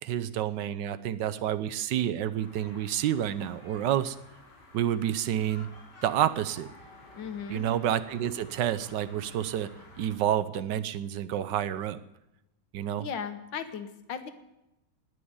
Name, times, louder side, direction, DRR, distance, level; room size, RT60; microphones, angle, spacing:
voice 1, 0.0-4.2 4.7-5.7 6.0-6.7 7.5-9.7 10.0-12.0 12.7-13.1, right 11 dB, 75° right, 13 dB, 1.3 m, -29 dB
sound 1, 2.4-10.1, left 2 dB, 65° left, 5.1 m, -52 dB
voice 2, 7.2-7.7 13.0-14.3, left 7 dB, 85° left, 9 dB, 1.9 m, -36 dB
18.5 x 6.4 x 9.6 m, 0.90 s
omnidirectional pair, 2.0 m